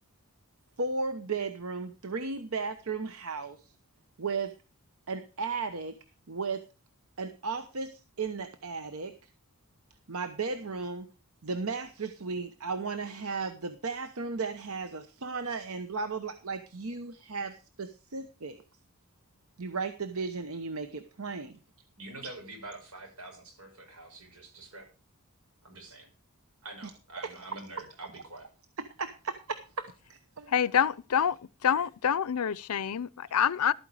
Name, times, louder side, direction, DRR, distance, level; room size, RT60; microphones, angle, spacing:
voice 1, 0.8-3.6 4.2-4.5 5.1-6.0 6.3-6.6 7.2-9.1 10.1-11.1 11.4-18.6 19.6-21.6 22.2-22.3 29.0-29.9, right 4 dB, 75° right, 1.0 m, -35 dB
voice 2, 22.0-24.9 25.6-26.1 26.6-28.5, right 2 dB, 90° right, 5.7 m, -46 dB
voice 3, 30.5-31.3 31.6-33.7, left 8 dB, 90° left, 0.5 m, -26 dB
12.5 x 9.1 x 4.8 m
head